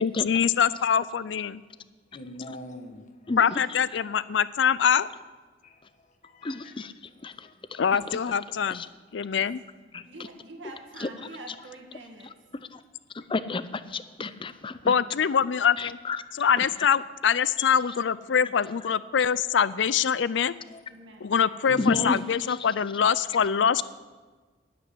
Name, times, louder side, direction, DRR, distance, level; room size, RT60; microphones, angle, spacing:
voice 1, 0.0-1.6 3.4-5.1 7.8-8.8 9.1-9.6 14.9-16.0 16.3-20.5 21.2-23.8, left 7 dB, 75° left, 18 dB, 0.5 m, -24 dB
voice 2, 2.1-3.3 5.6-6.7 7.4-7.5 8.0-8.2 9.3-9.4 14.4-14.5 20.7-20.8 21.4-22.2, left 1 dB, 45° left, 4 dB, 1.6 m, -43 dB
voice 3, 3.3-3.8 6.4-6.9 7.2-7.8 8.7-8.9 9.9-10.0 11.0-11.1 12.7-12.8 13.1-14.9 15.8-16.2 16.6-16.7 17.6-17.7 21.8-22.2, left 3 dB, 30° left, 14 dB, 0.5 m, -31 dB
voice 4, 10.0-12.4 20.9-21.7, right 2 dB, 80° right, 2 dB, 2.2 m, -46 dB
9.7 x 8.4 x 9.7 m, 1.3 s
head